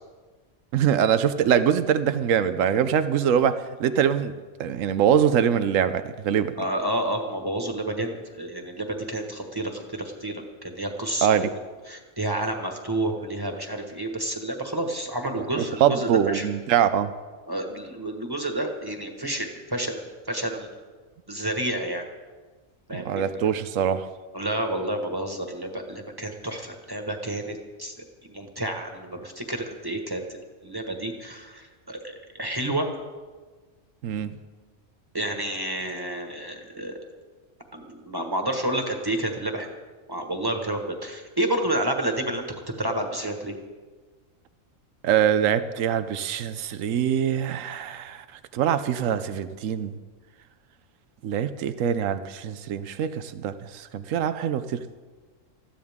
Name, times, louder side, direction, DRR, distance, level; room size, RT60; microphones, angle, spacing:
voice 1, 0.7-4.3 4.6-6.5 11.2-11.5 15.4-17.1 22.9-24.1 34.0-34.3 45.0-48.2 48.5-50.0 51.2-54.8, right 9 dB, 90° right, 11 dB, 1.0 m, -23 dB
voice 2, 6.6-11.5 11.9-16.5 17.5-20.0 20.3-20.7 21.3-22.0 22.9-23.5 24.3-27.9 28.2-30.2 30.6-32.9 35.1-36.9 37.7-39.7 40.1-42.4 42.8-43.6, right 1 dB, 20° right, 3 dB, 1.5 m, -30 dB
20.0 x 14.5 x 3.6 m, 1.4 s
omnidirectional pair, 1.3 m